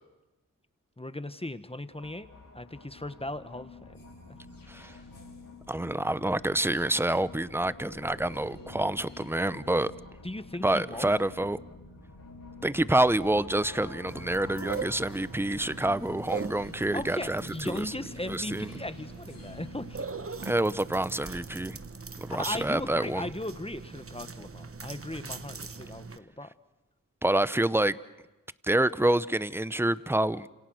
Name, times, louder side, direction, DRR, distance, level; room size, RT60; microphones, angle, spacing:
voice 1, 1.0-2.3 2.5-4.0 10.2-11.1 16.9-20.0 22.3-26.5, left 1 dB, 15° left, 11 dB, 1.4 m, -37 dB
sound 1, 1.9-20.7, left 2 dB, 85° left, 4.9 m, -48 dB
voice 2, 5.7-9.9 10.6-11.6 12.6-17.9 18.3-18.7 20.4-21.8 22.2-23.3 27.2-28.0 28.6-30.5, right 1 dB, 5° right, 16 dB, 0.8 m, -27 dB
sound 2, 14.1-26.2, right 4 dB, 40° right, 1.1 m, -41 dB
28.5 x 27.0 x 6.4 m, 1.1 s
cardioid pair, 40°, 33 cm